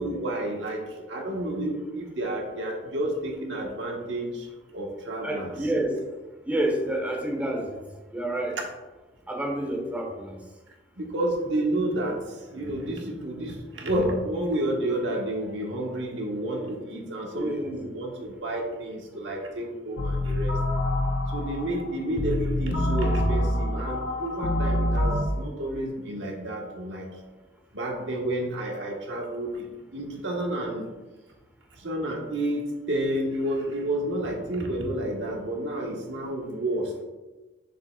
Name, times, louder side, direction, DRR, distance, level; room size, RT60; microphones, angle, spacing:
voice 1, 0.0-5.5 11.0-20.6 21.3-27.1 27.7-30.9 31.7-37.0, right 1 dB, 80° right, 0 dB, 1.4 m, -30 dB
voice 2, 5.2-6.0 6.5-7.7 8.1-8.6 9.3-10.3 17.3-17.7, right 1 dB, 10° right, 1 dB, 1.0 m, -28 dB
sound 1, 20.0-25.2, left 1 dB, 75° left, 0.8 m, -26 dB
6.8 x 6.7 x 2.4 m, 1.2 s
head